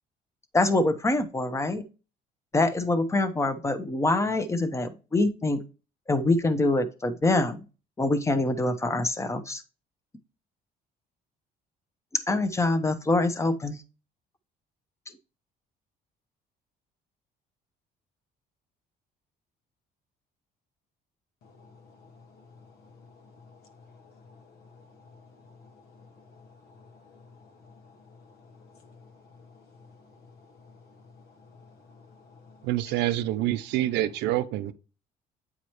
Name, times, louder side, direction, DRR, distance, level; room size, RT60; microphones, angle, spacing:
voice 1, 0.5-1.8 2.5-5.6 6.1-7.6 8.0-9.6 12.1-13.8, left 2 dB, 15° left, 1.0 m, -25 dB
voice 2, 21.4-33.0, left 4 dB, 70° left, 1.3 m, -54 dB
voice 3, 32.6-34.7, right 14 dB, 90° right, 0.6 m, -26 dB
8.7 x 4.9 x 3.1 m
cardioid pair, 110°, 17 cm